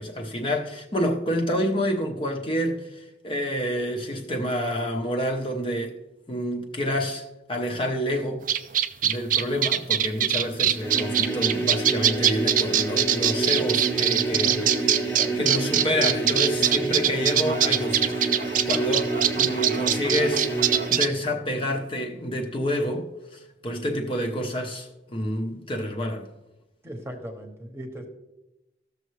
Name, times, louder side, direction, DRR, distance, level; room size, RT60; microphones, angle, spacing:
voice 1, 0.0-6.0 6.3-8.4 9.0-14.6 15.4-18.3 18.7-26.2, equal, 30° left, 0.7 m, -28 dB
sound 1, 8.5-21.1, right 10 dB, 50° right, 0.4 m, -23 dB
sound 2, 10.7-21.1, right 2 dB, 10° left, 1.1 m, -29 dB
voice 2, 14.3-14.9 15.1-15.4 26.8-28.1, equal, 15° right, 1.0 m, -38 dB
15.0 x 6.6 x 3.2 m
head